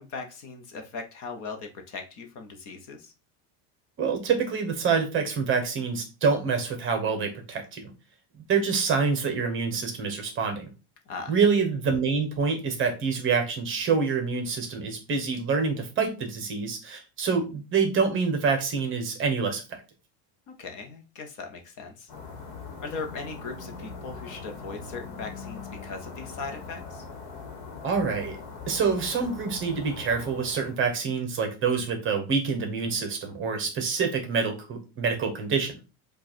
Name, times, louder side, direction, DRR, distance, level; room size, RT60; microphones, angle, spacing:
voice 1, 0.0-3.1 11.1-11.4 20.5-22.1 22.8-27.0, left 4 dB, 40° left, 5 dB, 0.9 m, -39 dB
voice 2, 4.0-7.9 8.5-10.7 11.3-19.8 27.8-28.4 28.7-35.7, right 5 dB, 25° right, 5 dB, 0.9 m, -26 dB
sound 1, 22.1-30.8, left 4 dB, 60° left, 1.3 m, -41 dB
5.2 x 2.5 x 4.2 m, 0.30 s
cardioid pair, 160°, 45 cm